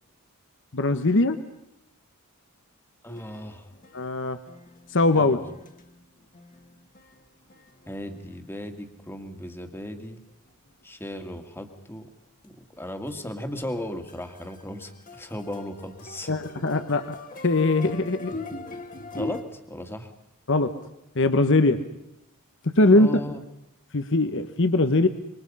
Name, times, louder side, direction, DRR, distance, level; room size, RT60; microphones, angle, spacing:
voice 1, 0.7-1.4 3.9-4.4 4.9-5.4 16.3-17.2 17.4-18.3 20.5-20.7 21.1-21.8 22.6-23.1 23.9-25.1, left 2 dB, 60° left, 10 dB, 1.2 m, -21 dB
voice 2, 3.0-3.7 5.2-5.4 7.9-10.2 10.8-12.1 12.4-16.3 16.6-16.7 19.1-20.1 22.9-23.4, left 1 dB, 10° left, 6 dB, 2.1 m, -36 dB
sound 1, 3.1-10.7 11.3-11.4 11.7-11.8 12.0-12.1 12.4-12.8 13.1-19.4, left 2 dB, 40° left, 1.9 m, -42 dB
27.5 x 25.0 x 5.6 m, 0.83 s
head